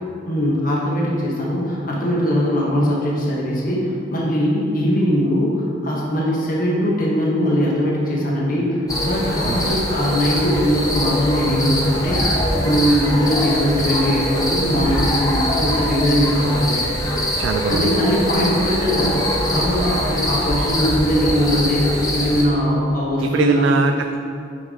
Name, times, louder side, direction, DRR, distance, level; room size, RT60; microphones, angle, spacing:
voice 1, 0.3-16.8 17.7-23.8, equal, 45° left, -3 dB, 1.2 m, -20 dB
sound 1, 8.9-22.4, left 1 dB, 20° left, 0.8 m, -23 dB
voice 2, 9.4-9.8 17.4-18.0 23.2-24.2, right 6 dB, 75° right, 5 dB, 0.3 m, -23 dB
9.1 x 5.5 x 3.7 m, 2.5 s
head